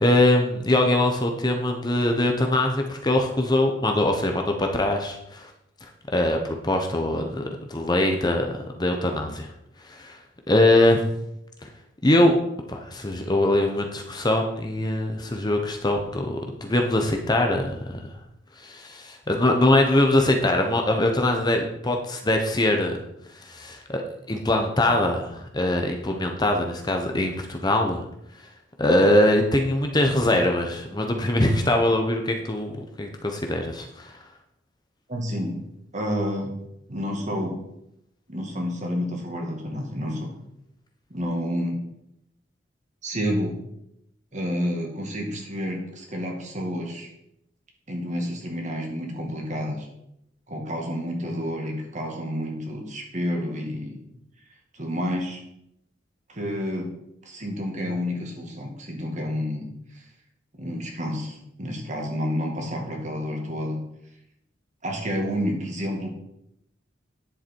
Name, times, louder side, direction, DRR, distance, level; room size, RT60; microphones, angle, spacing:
voice 1, 0.0-5.5 6.1-8.5 8.8-9.5 9.9-10.2 10.5-11.0 12.0-12.4 12.7-18.0 18.6-23.0 23.4-24.0 24.3-28.0 28.8-34.1, left 1 dB, 20° left, 3 dB, 0.9 m, -22 dB
voice 2, 35.1-35.6 35.9-36.5 36.9-37.6 38.3-40.3 41.1-41.8 43.0-43.6 44.3-47.1 47.9-49.9 50.5-54.0 54.7-55.4 56.3-56.9 57.2-59.7 60.5-63.8 64.8-66.1, equal, 40° right, 1 dB, 2.2 m, -29 dB
10.0 x 7.4 x 4.6 m, 0.79 s
head